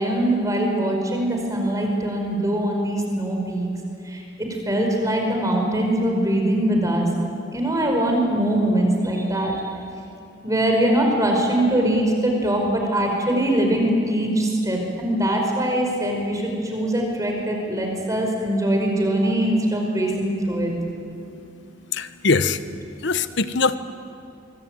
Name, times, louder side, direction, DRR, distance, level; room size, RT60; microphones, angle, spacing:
voice 1, 0.0-3.7 4.1-4.2 4.6-7.1 7.5-9.5 10.4-20.7, right 1 dB, 15° right, 1 dB, 4.9 m, -22 dB
voice 2, 21.9-22.6 23.0-23.8, left 4 dB, 60° left, 12 dB, 1.1 m, -21 dB
24.0 x 24.0 x 9.1 m, 2.6 s
head